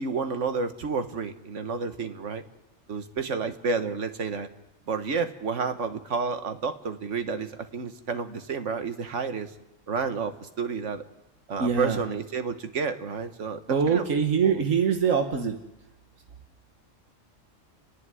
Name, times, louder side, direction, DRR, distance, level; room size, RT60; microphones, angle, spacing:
voice 1, 0.0-2.4 2.9-4.5 4.9-9.5 9.9-11.0 11.5-14.1 14.4-14.6, right 5 dB, 70° right, 9 dB, 1.6 m, -30 dB
voice 2, 11.6-12.0 13.7-15.5, right 6 dB, 90° right, 4 dB, 1.7 m, -23 dB
30.0 x 11.0 x 9.8 m, 0.97 s
omnidirectional pair, 1.3 m